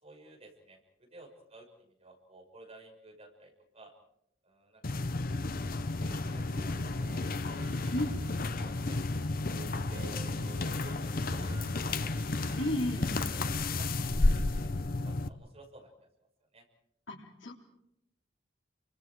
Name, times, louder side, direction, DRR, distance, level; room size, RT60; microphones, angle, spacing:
voice 1, 0.0-3.9 4.4-4.8 5.3-5.5 6.3-6.4 6.7-10.3 10.7-10.9 11.2-12.5 13.0-16.1 16.5-16.6, right 2 dB, 35° right, 0 dB, 6.3 m, -55 dB
sound 1, 4.8-15.3, left 2 dB, 50° left, 0.9 m, -32 dB
Singing, 6.0-14.5, right 1 dB, 55° right, 5.9 m, -48 dB
voice 2, 7.9-8.2 12.6-13.1 17.1-17.5, left 1 dB, 80° left, 2 dB, 3.5 m, -33 dB
30.0 x 25.0 x 4.8 m, 0.77 s
head